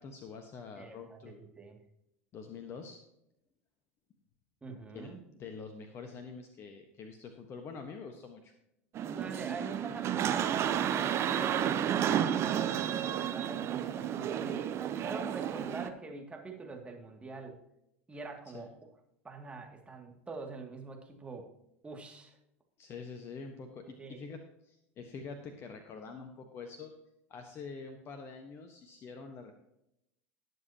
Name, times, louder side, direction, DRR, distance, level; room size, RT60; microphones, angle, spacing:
voice 1, 0.0-1.4 2.3-3.0 4.9-8.5 18.5-18.7 22.8-26.9 27.3-29.5, left 5 dB, 40° left, 6 dB, 1.3 m, -46 dB
voice 2, 0.8-1.8 4.6-5.2 9.0-17.6 18.1-18.9 19.2-21.5 21.8-22.4 23.8-24.3, right 3 dB, 15° right, 1 dB, 2.4 m, -45 dB
sound 1, 8.9-15.9, right 9 dB, 40° right, 1.0 m, -31 dB
19.0 x 7.5 x 2.9 m, 0.81 s
figure-of-eight pair, 80°, 7 cm